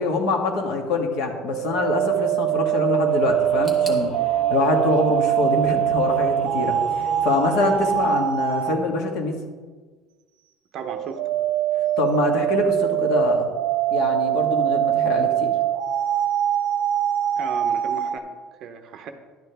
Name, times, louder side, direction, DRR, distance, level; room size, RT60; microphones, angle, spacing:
voice 1, 0.0-4.1 4.5-9.4 12.0-13.5 13.9-15.5, left 3 dB, 60° left, 3 dB, 1.5 m, -24 dB
sound 1, 1.5-8.8 10.8-18.1, right 11 dB, 85° right, 0.6 m, -23 dB
Singing / Musical instrument, 3.1-8.1, left 1 dB, 30° left, 2.5 m, -40 dB
sound 2, 3.6-6.5 6.8-7.6 7.9-8.0 8.8-8.9, right 1 dB, 5° left, 1.2 m, -46 dB
voice 2, 7.6-7.9 10.7-11.2 17.4-18.3 18.6-19.1, right 6 dB, 40° right, 7 dB, 0.8 m, -35 dB
11.5 x 9.4 x 3.4 m, 1.4 s
cardioid pair, 175°, 0 cm